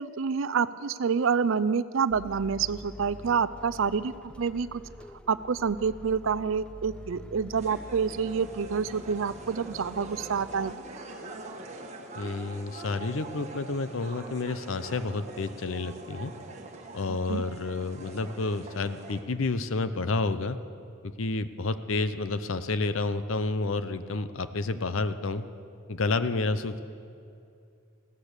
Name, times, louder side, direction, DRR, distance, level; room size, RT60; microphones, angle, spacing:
voice 1, 0.0-4.8 5.3-10.7 17.1-17.4, right 6 dB, 65° right, 17 dB, 0.5 m, -28 dB
sound 1, 2.1-10.7, left 1 dB, 5° left, 0.4 m, -46 dB
sound 2, 7.5-19.2, right 2 dB, 35° right, 1.4 m, -44 dB
voice 2, 12.1-16.3 16.9-20.6 21.0-25.4 25.9-26.8, left 3 dB, 70° left, 12 dB, 0.7 m, -30 dB
16.0 x 13.5 x 6.7 m, 2.5 s
head